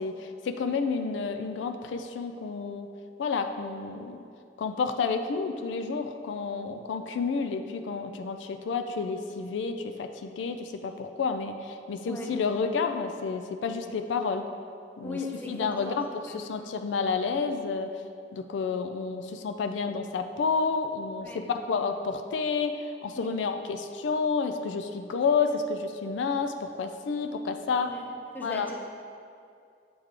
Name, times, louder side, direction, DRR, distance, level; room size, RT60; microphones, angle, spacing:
voice 1, 0.0-2.9 3.2-4.2 4.6-14.4 15.0-15.2 15.5-17.9 18.3-27.9 28.4-28.7, left 5 dB, 90° left, 7 dB, 0.3 m, -30 dB
voice 2, 15.0-16.4 21.2-21.4 23.2-23.3 27.8-28.1 28.3-28.8, left 2 dB, 10° left, -1 dB, 0.6 m, -38 dB
7.8 x 3.4 x 3.6 m, 2.4 s
head